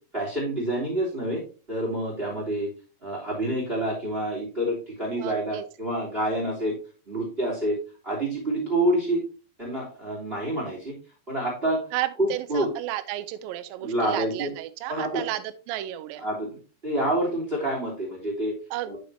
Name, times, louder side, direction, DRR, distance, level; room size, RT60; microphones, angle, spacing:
voice 1, 0.1-1.4 1.7-2.7 3.0-6.8 7.1-7.8 8.0-9.2 9.6-10.9 11.3-11.8 12.2-12.7 13.8-14.5 14.9-15.3 16.2-18.5 18.9-19.0, right 1 dB, 15° right, -2 dB, 2.9 m, -27 dB
voice 2, 5.2-5.6 11.9-16.2 18.7-19.0, right 14 dB, 85° right, 10 dB, 2.0 m, -32 dB
9.3 x 6.7 x 2.8 m, 0.34 s
omnidirectional pair, 4.9 m